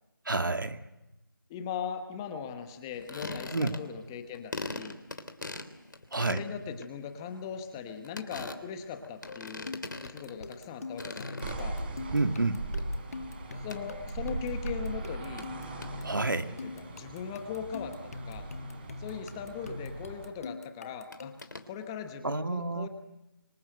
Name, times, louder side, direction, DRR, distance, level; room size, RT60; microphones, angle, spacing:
voice 1, 0.3-0.8 3.5-3.8 6.1-6.4 12.1-12.6 16.0-16.5 22.2-22.9, right 3 dB, 65° right, 8 dB, 2.1 m, -29 dB
voice 2, 1.5-5.0 6.2-9.7 10.0-11.8 13.5-15.5 16.4-18.5 19.0-21.3 21.6-22.9, left 7 dB, 10° left, 7 dB, 1.1 m, -39 dB
sound 1, 2.9-4.1 4.3-10.7 10.9-12.0 12.3-12.8 13.7-13.8 15.0-15.1 15.4-15.5 15.8-15.9 21.1-21.7, left 2 dB, 60° left, 3.3 m, -41 dB
sound 2, 9.3-21.6, left 3 dB, 45° left, 1.6 m, -44 dB
sound 3, 11.4-20.3, right 2 dB, 25° right, 4.6 m, -39 dB
28.0 x 25.5 x 7.8 m, 0.98 s
figure-of-eight pair, 165°, 12 cm